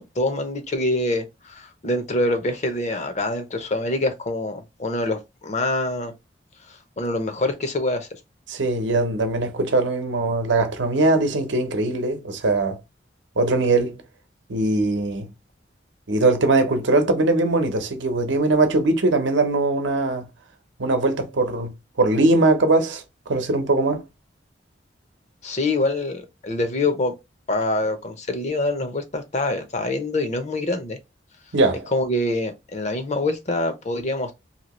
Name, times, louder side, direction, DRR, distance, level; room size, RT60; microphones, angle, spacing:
voice 1, 0.0-6.1 6.7-8.1 25.4-27.1 27.5-31.0 31.9-34.3, left 2 dB, 40° left, 0.6 m, -25 dB
voice 2, 8.5-12.8 13.4-14.0 14.5-15.3 16.1-20.3 20.8-23.0 23.3-24.0 31.5-31.9, right 2 dB, 80° right, 0.8 m, -21 dB
2.8 x 2.8 x 2.9 m
head